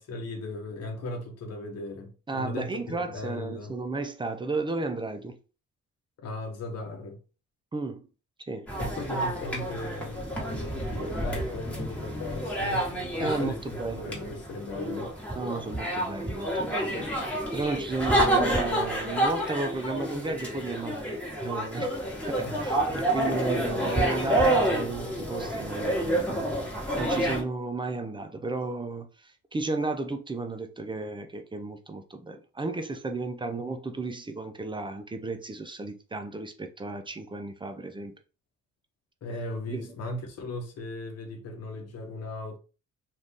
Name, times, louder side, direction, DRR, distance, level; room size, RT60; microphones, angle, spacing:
voice 1, 0.0-3.8 6.2-7.2 8.8-12.9 13.2-15.1 22.4-23.0 39.2-42.6, left 2 dB, 55° left, 0.9 m, -37 dB
voice 2, 2.3-5.4 7.7-8.0 8.5-8.7 13.2-14.1 15.4-22.0 22.3-26.4 27.0-38.1 39.7-39.9, right 3 dB, 15° right, 0.4 m, -33 dB
sound 1, 8.7-27.4, right 1 dB, 5° left, 1.2 m, -29 dB
2.6 x 2.4 x 3.5 m
cardioid pair, 90°, 30 cm